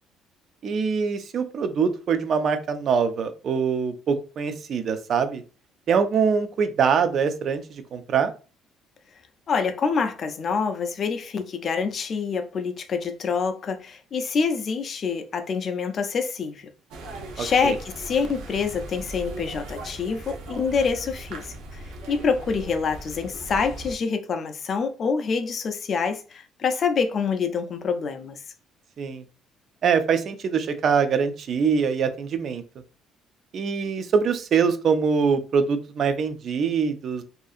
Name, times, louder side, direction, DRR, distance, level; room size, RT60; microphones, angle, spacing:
voice 1, 0.6-5.4 5.9-8.3 17.4-17.7 29.0-29.2 29.8-32.6 33.5-37.2, right 6 dB, 45° right, 0.3 m, -23 dB
voice 2, 9.5-16.7 17.4-28.4, left 5 dB, 35° left, 0.4 m, -26 dB
sound 1, 16.9-23.9, right 2 dB, 80° right, 0.6 m, -39 dB
2.6 x 2.4 x 2.4 m
cardioid pair, 160°, 0 cm